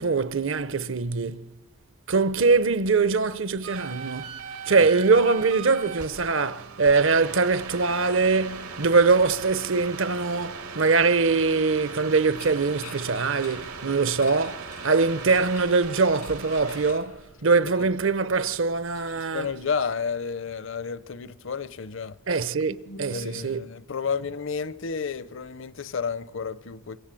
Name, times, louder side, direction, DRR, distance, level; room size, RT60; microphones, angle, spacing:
voice 1, 0.0-1.5 2.1-4.4 4.7-19.5 22.3-23.6, right 4 dB, 60° right, 0.8 m, -23 dB
sound 1, 3.6-16.9, right 5 dB, 90° right, 2.4 m, -39 dB
sound 2, 11.9-17.9, left 7 dB, 90° left, 2.1 m, -48 dB
voice 2, 19.2-22.2 22.9-27.0, left 5 dB, 60° left, 0.7 m, -31 dB
25.5 x 22.0 x 7.7 m
head